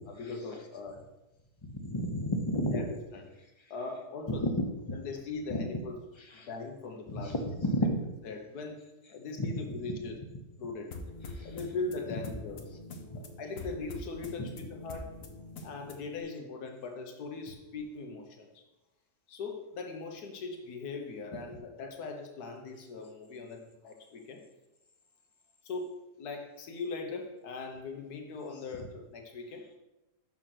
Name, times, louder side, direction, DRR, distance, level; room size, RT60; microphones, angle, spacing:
voice 1, 0.1-1.1 2.7-3.2 3.7-4.5 4.9-5.9 6.3-7.3 7.8-7.9 8.2-8.8 9.1-10.2 10.6-10.9 11.4-12.6 13.1-15.2 15.6-18.6 19.3-24.4 25.6-29.7, left 3 dB, 80° left, 3 dB, 1.6 m, -40 dB
voice 2, 1.7-2.8 4.4-5.0 5.5-5.6 7.1-8.0 9.4-9.5 11.3-11.5, left 1 dB, 25° left, 4 dB, 0.6 m, -31 dB
sound 1, 10.9-16.2, left 2 dB, 60° left, 1.3 m, -44 dB
6.5 x 5.6 x 5.9 m, 0.98 s
omnidirectional pair, 1.6 m